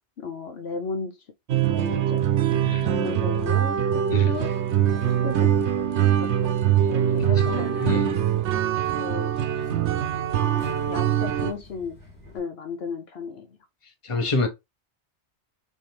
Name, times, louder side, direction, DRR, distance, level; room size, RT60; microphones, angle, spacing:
voice 1, 0.2-1.1 1.7-2.2 2.8-3.8 4.1-4.5 4.9-5.5 6.4-6.5 6.9-7.7 9.0-9.3 10.3-12.0 12.3-13.5, left 5 dB, 70° left, 0.9 m, -34 dB
sound 1, 1.5-11.5, right 10 dB, 85° right, 0.9 m, -23 dB
Subway metro underground, 4.3-12.4, right 3 dB, 10° left, 2.2 m, -44 dB
voice 2, 7.2-7.5 7.8-8.1 14.0-14.5, left 3 dB, 30° left, 1.0 m, -27 dB
6.2 x 2.7 x 3.2 m
omnidirectional pair, 1.1 m